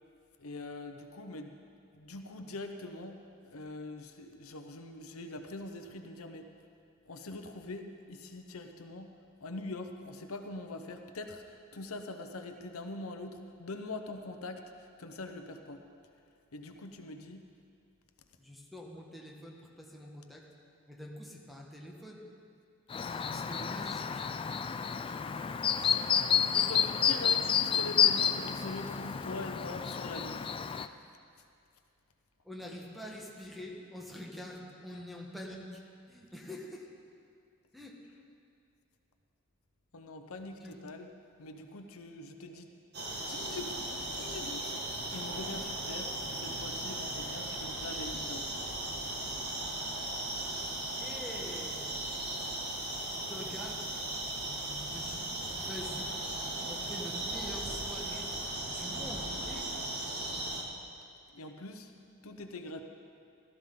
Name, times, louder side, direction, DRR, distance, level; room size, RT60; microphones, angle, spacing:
voice 1, 0.4-1.6 1.9-6.5 7.1-9.1 9.4-15.8 16.5-17.4 25.7-30.5 39.9-41.1 41.4-42.7 43.1-43.9 44.1-48.5 61.3-61.9 62.2-62.8, left 2 dB, 90° left, 5 dB, 0.9 m, -43 dB
voice 2, 18.4-20.5 20.9-22.2 23.0-24.2 32.4-35.8 36.1-36.9 37.7-38.0 40.3-40.8 50.7-51.8 53.3-53.8 54.7-56.1 56.6-58.3 58.7-59.7, left 1 dB, ahead, -2 dB, 1.4 m, -46 dB
Chirp tweet, 22.9-30.9, left 7 dB, 25° left, 0.3 m, -30 dB
sound 1, 42.9-60.6, right 1 dB, 50° right, 1.8 m, -37 dB
16.5 x 13.0 x 3.9 m, 2.3 s
head